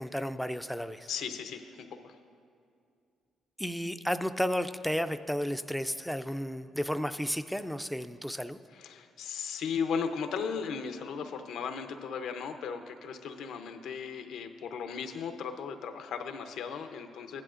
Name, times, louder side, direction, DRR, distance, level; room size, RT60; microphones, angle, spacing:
voice 1, 0.0-1.1 3.6-8.6, equal, ahead, 10 dB, 0.3 m, -33 dB
voice 2, 1.1-2.1 8.7-17.4, left 6 dB, 80° left, 7 dB, 0.6 m, -36 dB
15.5 x 10.5 x 2.5 m, 2.4 s
cardioid pair, 90°, 0 cm